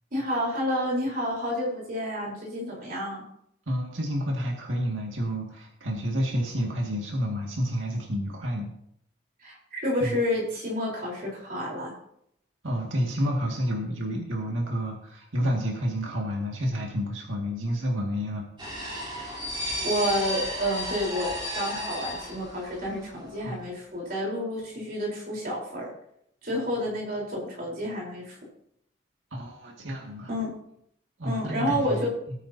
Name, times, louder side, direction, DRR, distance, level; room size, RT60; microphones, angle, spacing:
voice 1, 0.1-3.2 9.4-11.9 19.8-25.9 26.4-28.4 30.3-30.5 31.2-32.1, equal, 45° right, -3 dB, 4.1 m, -29 dB
voice 2, 3.7-8.7 10.0-10.2 12.6-18.5 23.4-23.7 29.3-30.3 31.2-32.1, equal, 90° right, -1 dB, 2.1 m, -29 dB
sound 1, 18.6-23.0 23.2-23.4, left 1 dB, 25° right, 3.5 m, -33 dB
18.5 x 9.4 x 2.8 m, 0.72 s
head